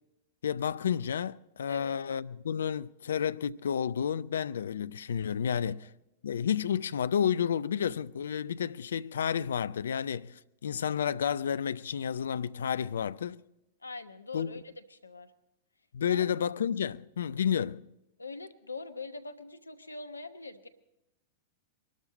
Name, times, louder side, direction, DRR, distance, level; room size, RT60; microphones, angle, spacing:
voice 1, 0.4-5.9 6.2-13.4 14.3-14.5 15.9-17.8, left 8 dB, 70° left, 0.4 m, -31 dB
voice 2, 13.8-14.6 14.9-15.3 16.1-16.3 18.2-20.7, left 3 dB, 90° left, 1.0 m, -43 dB
23.0 x 12.5 x 4.0 m
figure-of-eight pair, 100°, 0 cm